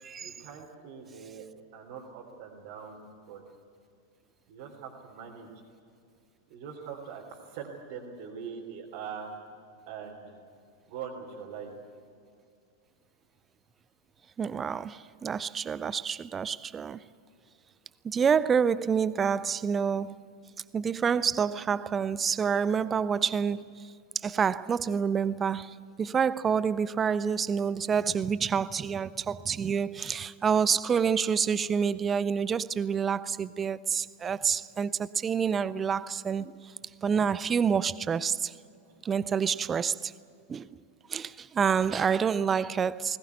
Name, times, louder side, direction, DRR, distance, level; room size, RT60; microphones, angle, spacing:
voice 1, 0.2-3.4 4.5-5.5 6.5-9.4 9.9-10.4 10.9-11.7 38.8-39.0, right 6 dB, 50° right, 3.4 m, -42 dB
voice 2, 14.4-17.0 18.0-20.2 20.7-23.7 24.2-25.7 26.0-36.5 37.0-38.5 39.0-40.1 40.5-40.7 41.1-43.2, right 6 dB, 20° right, 0.5 m, -28 dB
20.5 x 19.0 x 9.5 m
figure-of-eight pair, 90°, 0 cm